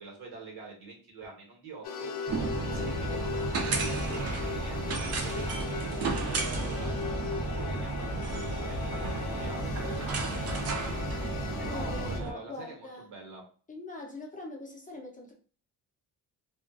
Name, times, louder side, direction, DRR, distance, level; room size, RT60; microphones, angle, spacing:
voice 1, 0.0-8.8 9.1-10.8 11.6-13.4, right 3 dB, 90° right, 1.1 m, -46 dB
sound 1, 1.8-12.2, left 5 dB, 80° left, 0.5 m, -38 dB
sound 2, 2.3-12.3, right 3 dB, 40° right, 0.4 m, -33 dB
voice 2, 11.6-13.1 13.7-15.3, left 2 dB, 20° left, 0.4 m, -42 dB
2.4 x 2.2 x 2.3 m
cardioid pair, 150°, 38 cm